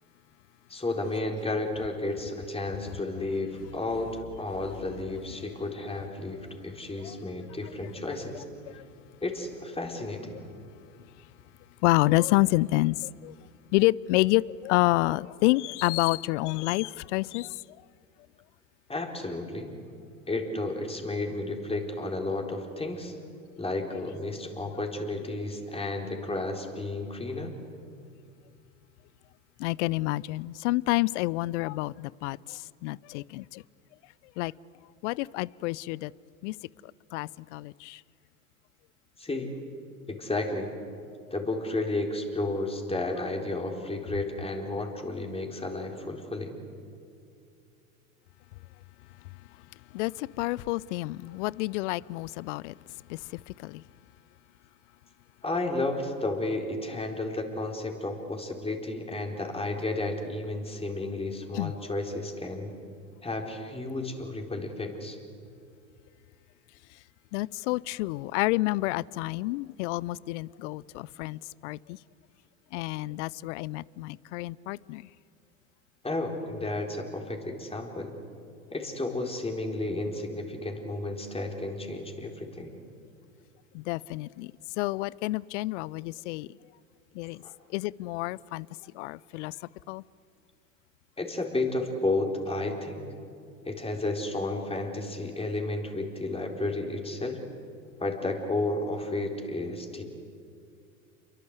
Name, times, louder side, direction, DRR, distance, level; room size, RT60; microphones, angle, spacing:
voice 1, 0.7-8.4 9.2-10.4 18.9-19.7 20.3-23.2 23.6-27.5 39.2-39.6 40.1-40.7 41.3-46.5 55.4-62.7 63.2-65.2 76.0-78.1 78.7-82.7 87.4-87.5 91.2-93.0 93.6-97.4 98.0-100.0, left 2 dB, 15° left, 4.2 m, -32 dB
voice 2, 11.8-13.3 13.7-17.5 29.6-33.6 34.4-34.5 35.0-36.1 36.4-36.5 37.1-38.0 49.9-52.7 53.1-53.2 53.6-53.8 61.5-61.7 67.3-72.0 72.7-75.0 83.7-84.5 84.8-86.5 87.2-87.4 87.7-88.7 89.0-89.5 89.9-90.0, left 20 dB, 55° left, 0.6 m, -28 dB
28.5 x 23.5 x 8.1 m
hypercardioid pair, 80°, 42 cm